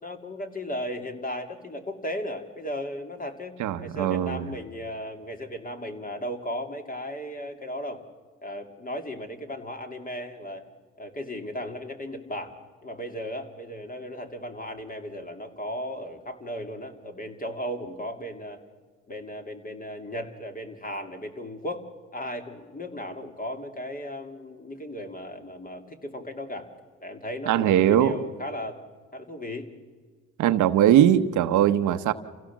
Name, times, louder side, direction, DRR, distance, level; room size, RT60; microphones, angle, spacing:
voice 1, 0.0-8.0 8.4-10.6 11.0-12.5 12.8-18.6 19.1-21.8 22.1-26.7 27.0-28.8 29.1-29.7, left 1 dB, 30° left, 5 dB, 2.7 m, -36 dB
voice 2, 3.6-4.4 27.5-28.2 30.4-32.1, right 11 dB, 80° right, 10 dB, 1.0 m, -20 dB
27.5 x 16.0 x 7.3 m, 1.5 s
cardioid pair, 90°, 30 cm